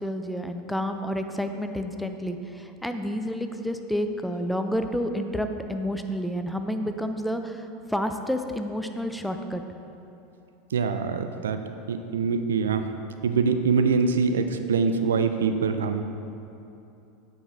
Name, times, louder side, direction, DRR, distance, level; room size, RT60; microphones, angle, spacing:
voice 1, 0.0-9.6, equal, 5° left, 7 dB, 0.4 m, -30 dB
voice 2, 10.7-11.6 11.9-12.9 13.2-16.0, right 5 dB, 85° right, 8 dB, 0.4 m, -24 dB
8.6 x 4.9 x 2.7 m, 2.8 s
hypercardioid pair, 90°, 0 cm